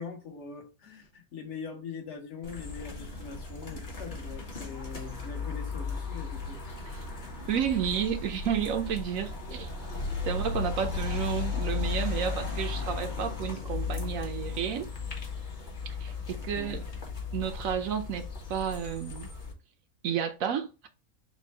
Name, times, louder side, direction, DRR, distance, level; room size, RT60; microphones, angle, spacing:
voice 1, 0.0-6.6 11.5-11.6 16.5-16.9, left 5 dB, 55° left, 1.2 m, -42 dB
sound 1, 2.4-19.5, left 4 dB, 40° left, 1.1 m, -35 dB
voice 2, 7.5-9.7 10.3-14.9 15.9-16.8 17.3-19.3 20.0-20.9, right 8 dB, 70° right, 1.0 m, -31 dB
4.3 x 2.3 x 4.3 m
omnidirectional pair, 1.5 m